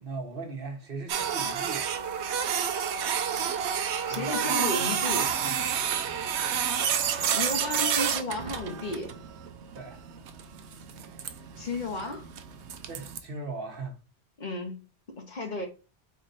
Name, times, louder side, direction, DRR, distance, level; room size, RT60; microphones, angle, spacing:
voice 1, 0.0-1.9 4.0-4.5 4.9-5.6 5.9-6.2 9.7-10.0 12.9-14.0, right 3 dB, 55° right, 1.2 m, -39 dB
Printer, 1.1-13.2, right 8 dB, 85° right, 0.9 m, -29 dB
voice 2, 4.1-5.3 7.3-9.1 11.6-12.3 14.4-14.8 15.1-15.7, left 2 dB, 45° left, 1.0 m, -33 dB
4.4 x 3.1 x 4.0 m
omnidirectional pair, 1.1 m